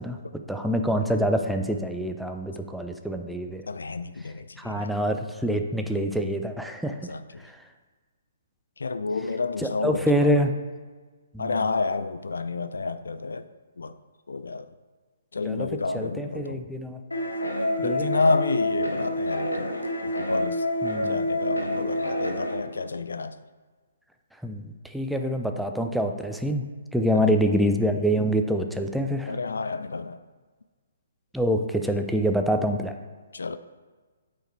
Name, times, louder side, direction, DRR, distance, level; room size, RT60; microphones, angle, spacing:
voice 1, 0.0-3.6 4.6-7.0 7.4-7.6 9.6-10.5 11.3-11.6 15.5-15.7 15.9-17.0 17.8-18.1 20.8-21.2 24.4-26.6 26.9-29.3 31.3-33.0, equal, ahead, 0.5 m, -26 dB
voice 2, 3.7-5.0 7.0-7.4 8.8-10.3 11.4-13.5 13.8-13.9 14.3-14.7 15.3-16.6 17.8-19.7 20.0-20.6 21.0-23.4 27.1-27.3 29.3-30.2 33.3-33.6, left 3 dB, 75° left, 0.4 m, -30 dB
sound 1, 17.1-22.5, left 1 dB, 90° left, 1.4 m, -27 dB
8.9 x 4.9 x 4.6 m
figure-of-eight pair, 130°, 0 cm